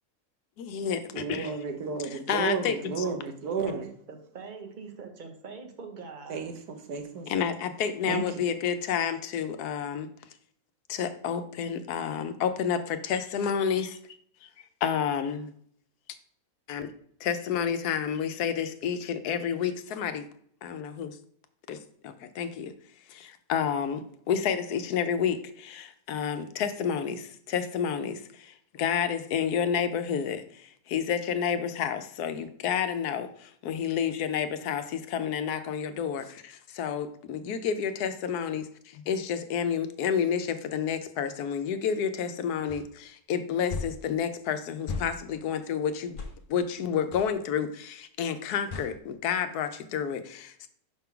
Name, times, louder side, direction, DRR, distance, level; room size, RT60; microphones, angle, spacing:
voice 1, 0.6-1.5 2.1-3.0 7.3-10.1 10.9-14.0 14.4-14.5 14.8-15.5 16.7-16.9 17.2-20.3 20.6-21.2 21.7-21.8 22.0-22.7 23.1-46.2 46.5-50.7, left 7 dB, 90° left, 9 dB, 1.2 m, -30 dB
voice 2, 1.1-3.8 6.3-7.3 8.0-8.4, right 5 dB, 85° right, 6 dB, 1.4 m, -32 dB
voice 3, 3.0-6.5, right 5 dB, 35° right, 4 dB, 1.0 m, -44 dB
sound 1, 42.7-42.8 43.7-44.0 44.9-45.1 46.2-46.4 47.1-47.3 48.7-48.9, left 4 dB, 45° left, 0.7 m, -35 dB
4.9 x 3.7 x 5.7 m, 0.63 s
omnidirectional pair, 1.6 m